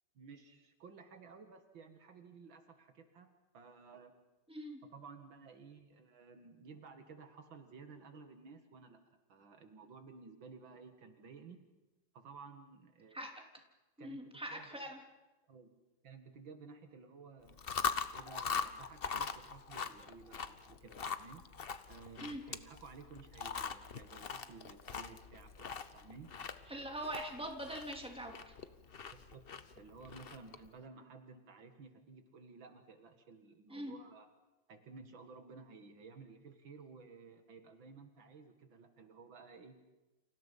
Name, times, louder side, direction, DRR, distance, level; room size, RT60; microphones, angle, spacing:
voice 1, 0.1-3.3 3.5-4.1 4.9-9.0 9.3-11.6 12.1-13.2 14.0-14.8 15.5-15.7 16.0-17.9 18.1-21.4 21.9-26.3 29.1-29.5 29.7-34.3 34.7-39.8, right 4 dB, 75° right, 7 dB, 2.6 m, -55 dB
voice 2, 4.5-4.8 13.1-13.3 14.0-15.0 22.2-22.4 26.7-28.5 33.7-34.0, right 1 dB, 5° right, 2 dB, 3.2 m, -43 dB
Chewing mastication, 17.5-30.7, left 6 dB, 40° left, 0.8 m, -42 dB
29.5 x 27.5 x 5.5 m, 1.1 s
omnidirectional pair, 2.2 m